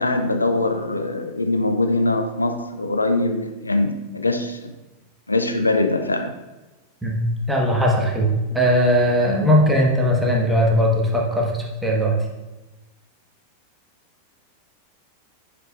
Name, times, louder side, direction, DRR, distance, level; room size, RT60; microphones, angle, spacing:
voice 1, 0.0-4.7 5.3-6.4, left 2 dB, 80° left, 7 dB, 0.4 m, -22 dB
voice 2, 7.5-8.3 8.5-12.1, equal, 5° right, -1 dB, 1.3 m, -19 dB
6.8 x 6.6 x 2.4 m, 1.1 s
figure-of-eight pair, 90°, 0 cm